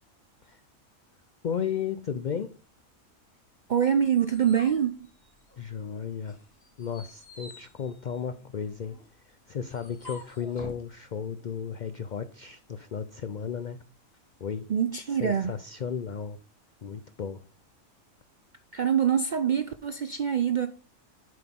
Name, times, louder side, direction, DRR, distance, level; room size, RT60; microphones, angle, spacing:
voice 1, 1.4-2.5 5.6-6.4 6.8-9.0 9.3-13.8 14.4-14.7 15.2-16.4 16.8-17.4, left 7 dB, 85° left, 0.4 m, -34 dB
voice 2, 3.7-4.9 14.7-15.5 18.7-20.7, right 8 dB, 70° right, 0.4 m, -25 dB
sound 1, 3.8-5.8 6.2-10.9, left 2 dB, 45° left, 2.2 m, -49 dB
7.6 x 5.9 x 3.6 m
omnidirectional pair, 1.4 m